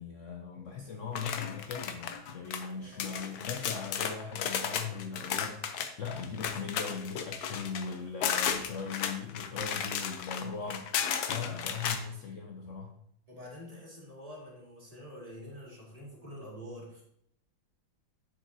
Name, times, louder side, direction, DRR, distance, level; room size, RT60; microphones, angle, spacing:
voice 1, 0.0-13.0, left 5 dB, 85° left, 3 dB, 0.6 m, -39 dB
sound 1, 1.1-2.7 3.0-12.0, left 8 dB, 65° left, 1.0 m, -34 dB
voice 2, 2.8-3.5 11.6-11.8 13.3-17.0, equal, 20° right, -4 dB, 2.1 m, -47 dB
7.7 x 6.5 x 2.7 m, 0.71 s
omnidirectional pair, 2.1 m